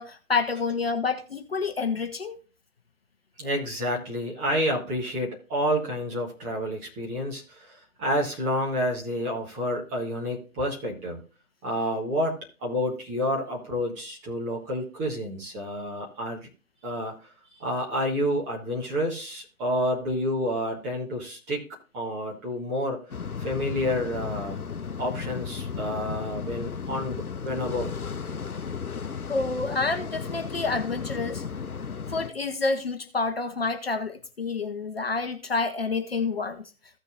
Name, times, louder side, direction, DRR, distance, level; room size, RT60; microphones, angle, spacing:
voice 1, 0.0-2.4 29.3-31.4 32.1-36.6, left 4 dB, 45° left, 7 dB, 0.9 m, -28 dB
voice 2, 3.4-11.2 11.6-12.3 12.6-16.5 16.8-17.1 17.5-21.6 21.9-23.0 23.4-24.6 25.0-27.9, equal, 10° right, -3 dB, 1.4 m, -29 dB
sound 1, 23.1-32.3, left 6 dB, 90° left, 0.7 m, -34 dB
15.5 x 6.7 x 2.5 m, 0.34 s
figure-of-eight pair, 145°, 43 cm